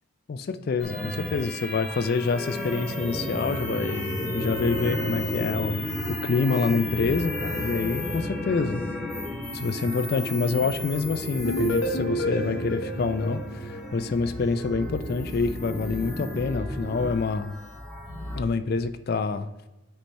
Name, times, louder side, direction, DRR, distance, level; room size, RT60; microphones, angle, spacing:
voice 1, 0.3-8.8 9.5-17.6 18.4-19.5, left 4 dB, 45° left, 10 dB, 0.3 m, -27 dB
sound 1, 0.8-18.4, left 1 dB, 5° left, 1.6 m, -33 dB
sound 2, 11.4-14.4, equal, 65° left, 0.9 m, -30 dB
9.2 x 4.2 x 3.3 m, 1.0 s
head